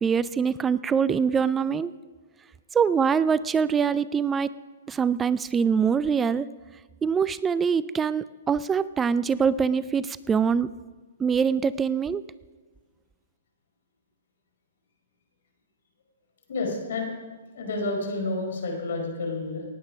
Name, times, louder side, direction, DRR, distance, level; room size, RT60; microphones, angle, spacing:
voice 1, 0.0-1.9 2.7-4.5 4.9-6.5 7.0-10.7 11.2-12.2, right 6 dB, 15° right, 17 dB, 0.3 m, -24 dB
voice 2, 16.5-17.1 17.5-19.6, left 2 dB, 70° left, 2 dB, 4.5 m, -29 dB
18.5 x 8.7 x 5.9 m, 1.4 s
hypercardioid pair, 130°, 0 cm